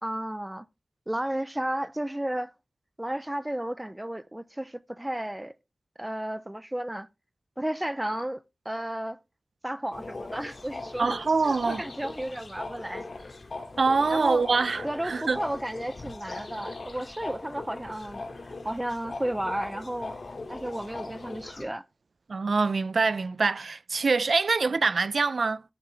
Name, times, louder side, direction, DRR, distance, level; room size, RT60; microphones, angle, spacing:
voice 1, 0.0-0.7 1.1-2.5 3.0-5.5 6.0-7.1 7.6-9.2 9.6-11.2 11.4-13.4 14.1-14.4 14.8-20.1 20.5-21.8, right 1 dB, 15° right, 0.6 m, -33 dB
sound 1, 9.9-21.6, left 3 dB, 70° left, 2.2 m, -40 dB
voice 2, 11.0-11.8 13.8-15.4 22.3-25.6, right 4 dB, 75° right, 0.5 m, -25 dB
13.0 x 8.7 x 3.4 m
wide cardioid pair, 55°, 0 cm